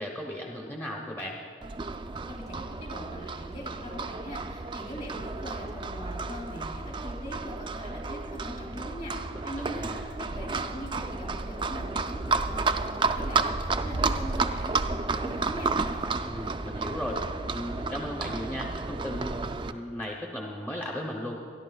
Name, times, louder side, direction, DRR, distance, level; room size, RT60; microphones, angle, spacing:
voice 1, 0.0-1.4 9.3-10.1 16.2-17.2 17.5-21.4, left 1 dB, 10° left, -2 dB, 0.7 m, -36 dB
Livestock farm animals working animals, 1.6-19.7, right 3 dB, 25° right, 0.3 m, -32 dB
voice 2, 2.3-9.9 10.2-13.5 13.8-15.7, equal, 45° left, -1 dB, 2.9 m, -41 dB
25.5 x 11.0 x 2.3 m, 2.4 s
head